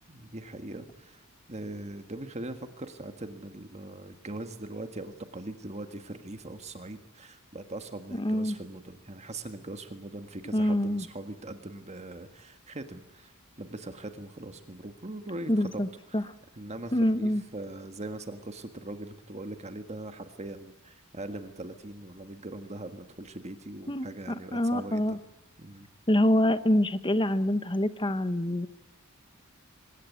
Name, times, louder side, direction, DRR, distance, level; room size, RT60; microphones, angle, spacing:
voice 1, 0.1-15.8 16.1-25.2 25.6-25.9, right 2 dB, 30° right, 7 dB, 1.7 m, -41 dB
voice 2, 8.1-8.5 10.5-11.0 15.5-15.9 16.1-16.2 16.9-17.4 23.9-24.1 24.5-25.2 26.1-28.7, left 1 dB, 20° left, 12 dB, 1.1 m, -25 dB
24.5 x 21.0 x 9.3 m, 0.87 s
head